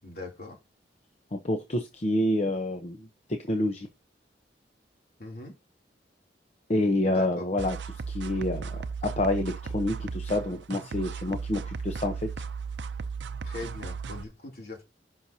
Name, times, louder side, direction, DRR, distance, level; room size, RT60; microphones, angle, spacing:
voice 1, 0.0-0.6 5.2-5.6 7.0-7.5 13.4-14.8, left 2 dB, 60° left, 3.0 m, -40 dB
voice 2, 1.3-3.1 3.5-3.9 6.7-7.8 8.1-12.3, left 1 dB, 40° left, 0.9 m, -28 dB
sound 1, 7.6-14.2, right 5 dB, 80° right, 0.5 m, -36 dB
11.0 x 5.8 x 2.8 m
head